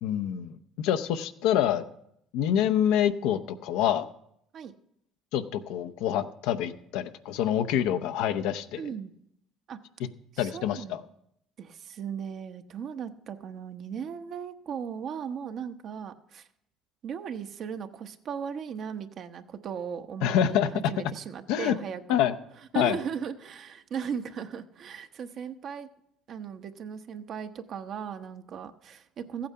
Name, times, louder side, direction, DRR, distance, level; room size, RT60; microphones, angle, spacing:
voice 1, 0.0-1.8 2.3-4.1 5.3-8.8 10.4-11.0 20.2-20.7 21.5-21.7 22.1-22.3 22.7-23.0, left 10 dB, 80° left, 9 dB, 0.7 m, -26 dB
voice 2, 8.8-9.1 9.7-9.8 10.3-11.0 11.6-16.5 17.0-22.3 22.7-25.9 26.3-29.5, right 7 dB, 55° right, 7 dB, 1.0 m, -37 dB
14.5 x 8.8 x 5.6 m, 0.75 s
supercardioid pair, 90°, 0 cm